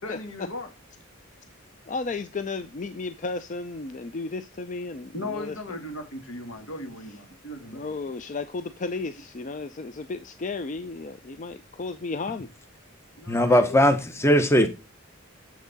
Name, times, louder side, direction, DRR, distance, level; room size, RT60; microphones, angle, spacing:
voice 1, 0.0-0.7 5.1-8.2 13.2-13.8, left 2 dB, 85° left, 2.0 m, -37 dB
voice 2, 1.9-5.5 7.7-12.5, left 3 dB, 35° left, 0.5 m, -33 dB
voice 3, 13.3-14.7, equal, 15° left, 0.8 m, -19 dB
7.4 x 5.9 x 4.0 m
head